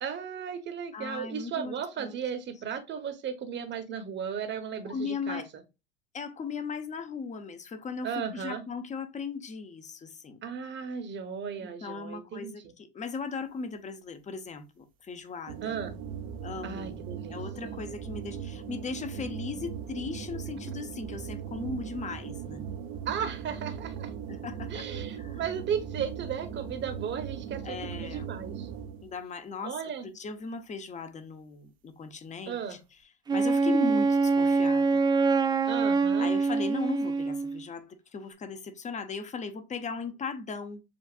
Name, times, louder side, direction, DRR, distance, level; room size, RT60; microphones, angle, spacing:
voice 1, 0.0-5.4 8.0-8.6 10.4-12.7 15.6-15.9 16.6-17.7 23.0-24.1 24.7-28.7 29.6-30.1 32.5-32.8 35.7-36.3, right 7 dB, 35° right, 1.1 m, -35 dB
voice 2, 0.9-2.1 4.9-5.5 6.1-10.4 11.6-15.7 16.4-17.0 17.3-22.7 24.3-24.9 25.2-25.4 27.6-28.3 29.0-29.7 30.0-32.8 33.3-35.0 36.2-40.8, left 4 dB, 20° left, 0.8 m, -37 dB
sound 1, 15.5-29.1, right 8 dB, 60° right, 0.9 m, -39 dB
Wind instrument woodwind instrument, 33.3-37.6, right 4 dB, 15° right, 0.3 m, -25 dB
7.2 x 2.5 x 2.5 m
hypercardioid pair, 95°, 32 cm